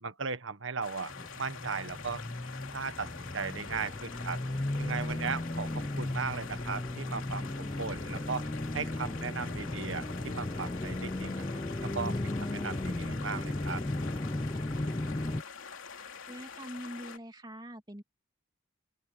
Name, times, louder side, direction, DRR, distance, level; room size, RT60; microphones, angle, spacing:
voice 1, 0.0-2.2 2.7-4.4 4.8-8.5 8.7-11.5 11.8-13.8, right 5 dB, 75° right, 1.4 m, -37 dB
sound 1, 0.8-17.2, left 6 dB, 85° left, 2.9 m, -46 dB
sound 2, 1.1-15.4, left 1 dB, 20° left, 0.5 m, -35 dB
voice 2, 16.3-18.0, equal, 20° right, 2.6 m, -43 dB
open air
head